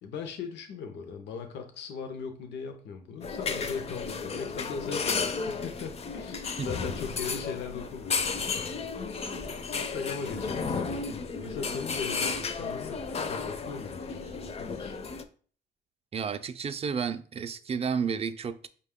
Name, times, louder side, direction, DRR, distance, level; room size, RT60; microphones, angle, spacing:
voice 1, 0.0-8.5 9.3-14.9, left 5 dB, 90° left, 0.5 m, -39 dB
sound 1, 3.2-15.2, left 4 dB, 35° left, 0.4 m, -33 dB
voice 2, 16.1-18.7, right 6 dB, 35° right, 0.3 m, -31 dB
5.1 x 2.2 x 3.5 m
cardioid pair, 90°, 18 cm